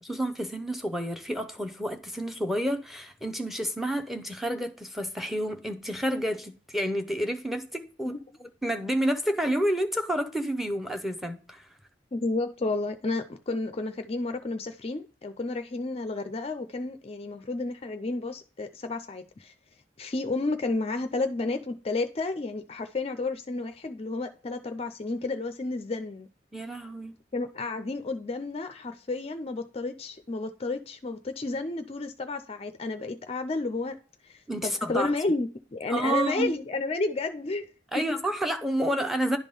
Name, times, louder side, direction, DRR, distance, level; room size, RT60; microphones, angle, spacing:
voice 1, 0.0-8.1 8.4-11.7 26.5-27.2 34.5-35.1 35.9-36.5 37.9-39.4, right 1 dB, ahead, 0.7 m, -29 dB
voice 2, 12.1-19.5 20.0-26.3 27.3-34.0 34.2-37.7 37.9-38.0, left 3 dB, 30° left, 0.4 m, -31 dB
10.5 x 3.6 x 5.3 m
head